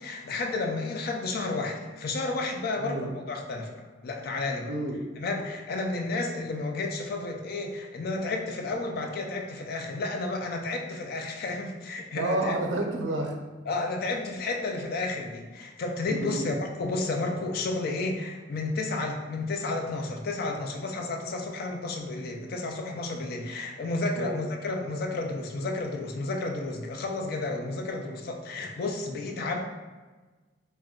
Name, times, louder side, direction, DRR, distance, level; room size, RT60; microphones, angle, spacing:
voice 1, 0.0-4.7 5.2-12.6 13.7-29.6, left 3 dB, 55° left, 3 dB, 0.3 m, -32 dB
voice 2, 2.8-3.1 4.7-5.0 12.1-13.4 16.1-16.5 24.1-24.4, right 1 dB, 75° right, 3 dB, 0.4 m, -30 dB
2.3 x 2.1 x 3.5 m, 1.3 s
head